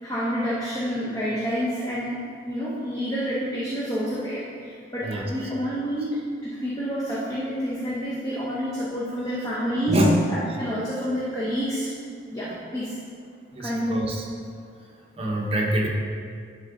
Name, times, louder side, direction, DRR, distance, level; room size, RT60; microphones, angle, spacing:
voice 1, 0.0-10.0 10.3-11.9 12.3-13.0 13.6-14.1, equal, 20° left, -8 dB, 0.9 m, -29 dB
voice 2, 13.5-14.2 15.2-15.9, right 1 dB, 30° right, -1 dB, 0.8 m, -24 dB
10.5 x 3.8 x 3.9 m, 2.2 s
head